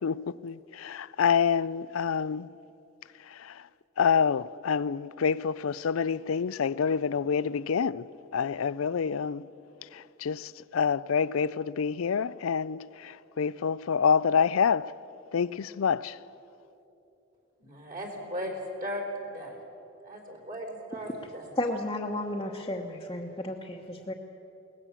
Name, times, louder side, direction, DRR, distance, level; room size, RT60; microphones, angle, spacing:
voice 1, 0.0-2.5 3.3-3.6 4.0-8.1 8.3-9.5 9.9-14.9 15.3-16.2, left 6 dB, 80° left, 0.5 m, -27 dB
voice 2, 17.6-19.6 20.0-21.5, equal, 45° right, 4.0 m, -37 dB
voice 3, 21.6-24.1, left 1 dB, 20° left, 1.2 m, -33 dB
22.0 x 18.5 x 7.4 m
head